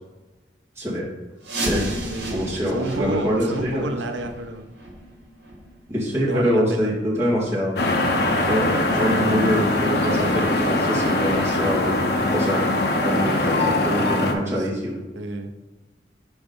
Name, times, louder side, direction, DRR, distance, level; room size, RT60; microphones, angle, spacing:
voice 1, 0.8-1.1 1.6-1.9 2.3-3.8 5.9-7.8 8.4-12.0 12.3-12.7 13.0-15.0, equal, 15° right, -8 dB, 2.0 m, -24 dB
sound 1, 1.4-7.0 7.3-7.5 8.0-8.1 8.7-8.8 9.4-9.5, right 1 dB, 70° right, 1.4 m, -33 dB
voice 2, 2.1-4.7 6.2-6.9 9.0-9.1 14.6-14.7 15.1-15.5, right 2 dB, 85° right, 6 dB, 0.6 m, -30 dB
sound 2, 7.8-14.3, left 2 dB, 60° left, 0.7 m, -22 dB
4.9 x 4.0 x 5.2 m, 1.1 s
head